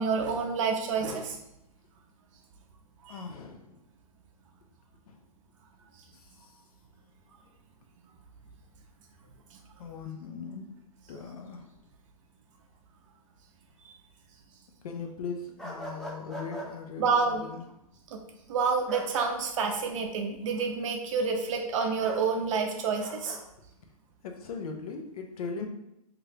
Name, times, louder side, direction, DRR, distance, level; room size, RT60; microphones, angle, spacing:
voice 1, 0.0-1.3 3.1-3.2 17.0-17.4 18.1-18.2 18.5-23.4, right 5 dB, 55° right, 4 dB, 0.5 m, -28 dB
voice 2, 3.1-3.8 5.1-5.2 6.1-6.3 9.8-10.6 11.1-11.7 14.8-17.6 24.2-25.7, left 5 dB, 70° left, 3 dB, 0.5 m, -39 dB
sound 1, 15.6-16.7 18.9-19.3 22.0-22.2 23.0-23.4, right 1 dB, ahead, 0.4 m, -40 dB
3.1 x 2.5 x 2.7 m, 0.83 s
hypercardioid pair, 125°, 19 cm